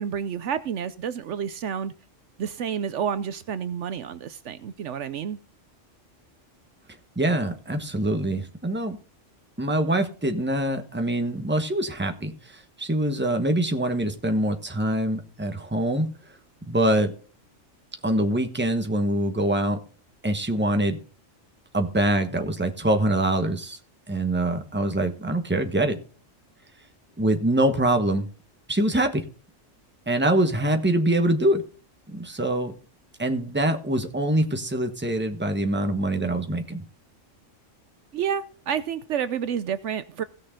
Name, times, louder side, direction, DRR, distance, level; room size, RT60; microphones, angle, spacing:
voice 1, 0.0-1.9 2.4-5.4 38.1-40.2, right 8 dB, 70° right, 0.9 m, -29 dB
voice 2, 7.2-9.0 9.6-16.1 16.6-17.1 18.0-19.8 20.2-21.0 21.7-23.8 24.1-26.0 27.2-28.3 28.7-29.3 30.1-31.6 32.1-32.7 33.2-36.8, right 1 dB, 10° right, 1.2 m, -24 dB
17.0 x 6.4 x 3.7 m
omnidirectional pair, 1.3 m